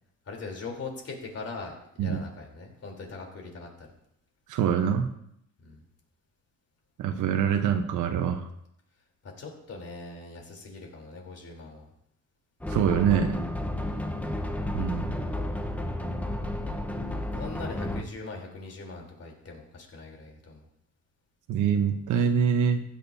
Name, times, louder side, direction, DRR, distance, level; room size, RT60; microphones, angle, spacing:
voice 1, 0.3-3.9 5.6-5.8 9.2-11.9 13.9-14.2 17.3-20.7, left 3 dB, 50° left, 0 dB, 3.6 m, -41 dB
voice 2, 4.5-5.1 7.0-8.5 12.7-13.4 14.7-15.1 21.5-22.8, right 7 dB, 85° right, 6 dB, 1.0 m, -25 dB
sound 1, 12.6-18.0, left 1 dB, 5° left, 1.0 m, -32 dB
15.5 x 10.5 x 2.8 m, 0.76 s
cardioid pair, 90°, 30 cm